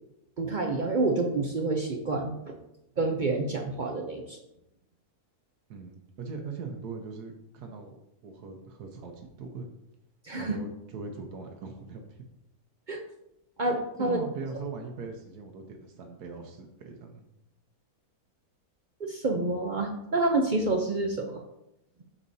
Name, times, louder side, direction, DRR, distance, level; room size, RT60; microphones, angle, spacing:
voice 1, 0.4-2.6 3.0-4.4 10.2-10.6 12.9-13.0 13.6-14.2 19.0-21.4, right 2 dB, 55° right, 2 dB, 0.5 m, -28 dB
voice 2, 5.7-8.0 8.2-9.7 10.4-12.3 14.0-17.3, right 4 dB, 90° right, 3 dB, 1.4 m, -40 dB
8.5 x 6.5 x 2.7 m, 0.84 s
omnidirectional pair, 1.6 m